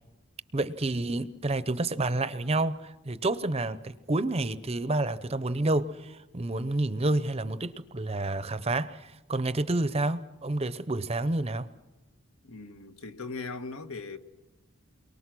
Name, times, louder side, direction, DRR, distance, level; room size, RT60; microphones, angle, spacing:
voice 1, 0.5-11.7, right 2 dB, 30° right, 0.7 m, -29 dB
voice 2, 12.4-14.2, left 4 dB, 75° left, 1.6 m, -39 dB
29.0 x 23.0 x 6.2 m
head